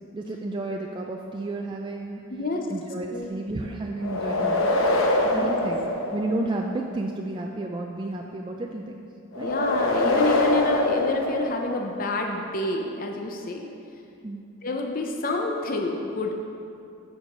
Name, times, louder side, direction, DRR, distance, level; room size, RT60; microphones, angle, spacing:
voice 1, 0.1-2.2 2.7-4.8 5.2-5.9 6.1-9.0 9.4-9.5 14.2-14.4, right 2 dB, 20° right, 1 dB, 0.3 m, -32 dB
voice 2, 2.3-2.7 3.1-3.3 5.3-5.6 9.4-13.7 14.6-16.3, left 2 dB, 40° left, 2 dB, 0.6 m, -28 dB
sound 1, 4.0-6.7 9.3-12.1, left 2 dB, 75° left, 0.9 m, -24 dB
9.1 x 4.7 x 6.6 m, 2.6 s
head